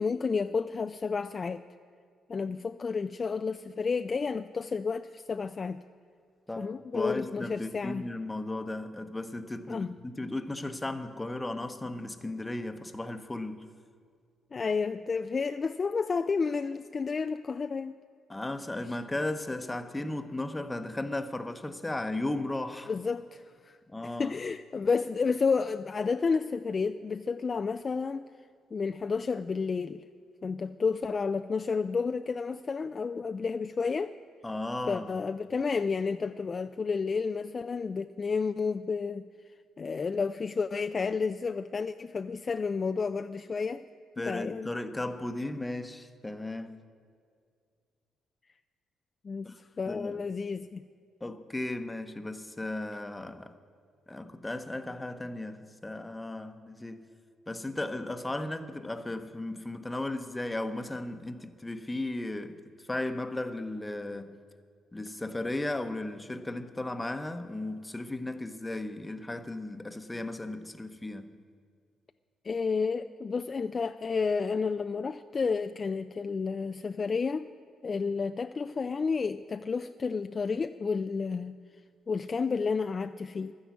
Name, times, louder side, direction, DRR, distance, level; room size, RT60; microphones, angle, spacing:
voice 1, 0.0-1.6 2.3-5.8 6.6-8.0 9.7-9.9 14.5-17.9 22.9-23.8 24.0-28.3 28.7-30.0 30.4-34.1 34.9-39.3 39.8-43.9 44.2-44.7 49.2-50.8 72.4-77.5 77.8-81.6 82.1-83.5, left 5 dB, 35° left, 0.3 m, -31 dB
voice 2, 6.5-13.7 18.3-22.9 23.9-24.3 34.4-35.3 44.2-46.8 49.4-49.6 49.9-50.2 51.2-53.6 54.1-57.1 57.5-64.4 64.9-71.4, left 2 dB, 15° left, 0.9 m, -35 dB
12.5 x 10.0 x 8.3 m
cardioid pair, 90°, 0 cm